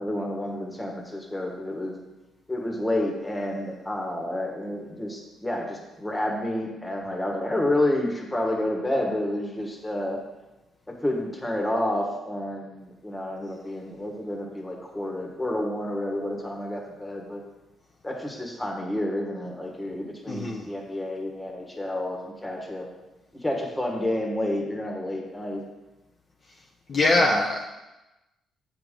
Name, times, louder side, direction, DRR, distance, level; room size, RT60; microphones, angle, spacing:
voice 1, 0.0-1.9 2.5-10.2 10.9-17.4 18.0-22.9 23.4-25.6 27.1-27.4, left 1 dB, 15° left, 1 dB, 1.5 m, -29 dB
voice 2, 20.3-20.7 26.9-27.7, left 2 dB, 45° left, -2 dB, 0.7 m, -22 dB
7.5 x 5.0 x 3.8 m, 1.0 s
cardioid pair, 90°, 0 cm